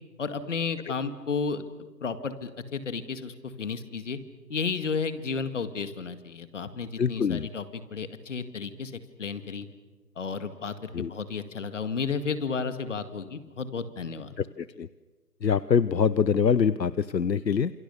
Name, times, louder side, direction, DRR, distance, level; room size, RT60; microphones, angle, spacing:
voice 1, 0.2-1.7 2.0-4.2 4.5-9.7 10.2-14.3, left 5 dB, 45° left, 11 dB, 2.2 m, -32 dB
voice 2, 7.0-7.5 10.9-11.1 14.4-14.9 15.4-17.7, left 6 dB, 85° left, 17 dB, 0.9 m, -24 dB
28.0 x 28.0 x 6.8 m, 1.3 s
figure-of-eight pair, 150°, 49 cm